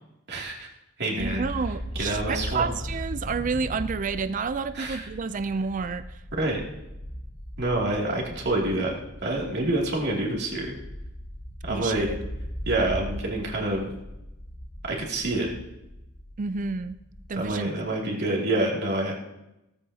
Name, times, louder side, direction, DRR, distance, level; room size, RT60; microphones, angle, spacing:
voice 1, 0.3-0.7 1.0-1.4 2.0-2.7 4.7-5.1 6.3-6.6 7.6-10.7 11.6-12.1 12.6-13.9 14.8-15.5 17.3-19.1, right 2 dB, 55° right, -2 dB, 2.6 m, -27 dB
sound 1, 1.2-18.0, equal, 35° left, 1.4 m, -38 dB
voice 2, 1.2-6.2 11.7-12.2 16.4-16.9 17.3-17.7 18.0-18.2, right 4 dB, 40° right, 12 dB, 0.4 m, -30 dB
17.0 x 14.0 x 2.8 m, 0.91 s
head